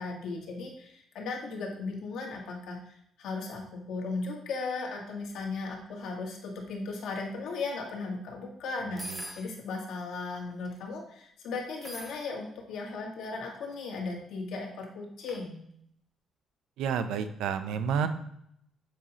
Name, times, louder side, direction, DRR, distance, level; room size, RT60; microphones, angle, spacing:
voice 1, 0.0-9.1 9.4-15.6, left 3 dB, 80° left, 0 dB, 1.6 m, -36 dB
sound 1, 9.0-9.5 10.4-10.8 11.8-12.2 13.4-13.8 15.2-15.4, equal, 25° right, 1.0 m, -42 dB
voice 2, 16.8-18.1, right 7 dB, 85° right, 10 dB, 0.5 m, -30 dB
7.4 x 5.5 x 2.9 m, 0.72 s
cardioid pair, 90°, 0 cm